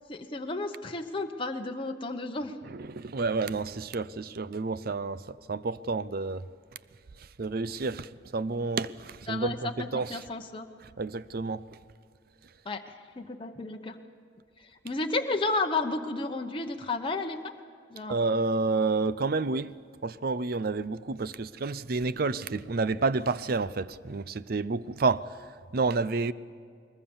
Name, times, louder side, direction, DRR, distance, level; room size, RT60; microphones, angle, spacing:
voice 1, 0.1-2.5 9.3-10.7 12.6-14.0 14.6-17.5 17.9-18.2, left 3 dB, 25° left, 0.9 m, -32 dB
voice 2, 2.6-6.4 7.2-10.3 10.8-11.8 18.1-19.8 20.0-26.3, right 3 dB, 50° right, 0.6 m, -30 dB
21.5 x 20.0 x 7.2 m
head